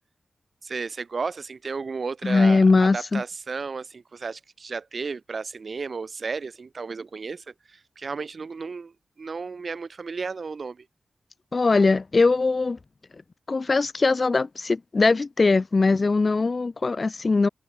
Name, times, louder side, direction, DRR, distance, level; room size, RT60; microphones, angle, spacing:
voice 1, 0.6-10.8, right 4 dB, 45° right, 3.2 m, -33 dB
voice 2, 2.2-3.2 11.5-12.8 13.5-17.5, left 3 dB, 30° left, 0.9 m, -21 dB
wide cardioid pair, 180°, 0 cm